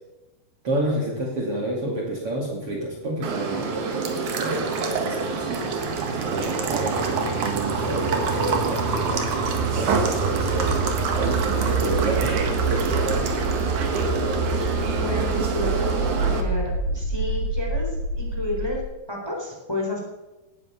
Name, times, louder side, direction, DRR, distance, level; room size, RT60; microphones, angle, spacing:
voice 1, 0.6-5.8 6.2-9.2 9.7-13.3, right 1 dB, 40° right, -1 dB, 2.9 m, -30 dB
sound 1, 2.9-18.8, right 4 dB, 85° right, 5.4 m, -28 dB
sound 2, 3.2-16.4, right 4 dB, 60° right, 2.9 m, -26 dB
voice 2, 14.9-17.9 18.2-18.8 19.1-20.0, left 2 dB, 5° left, 0 dB, 3.4 m, -31 dB
18.0 x 9.7 x 7.0 m, 1.1 s
omnidirectional pair, 4.3 m